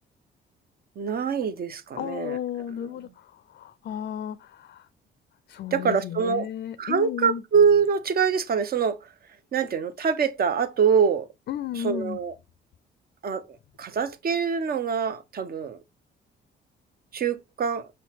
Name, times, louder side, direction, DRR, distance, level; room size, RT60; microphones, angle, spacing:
voice 1, 1.0-2.4 5.7-6.5 6.8-9.0 9.5-11.3 11.8-12.3 13.2-13.4 13.8-15.8 17.1-17.9, right 6 dB, 50° right, 0.7 m, -24 dB
voice 2, 1.9-4.9 5.5-7.4 11.5-12.2, left 10 dB, 55° left, 0.4 m, -34 dB
5.4 x 2.2 x 2.8 m
cardioid pair, 90°, 20 cm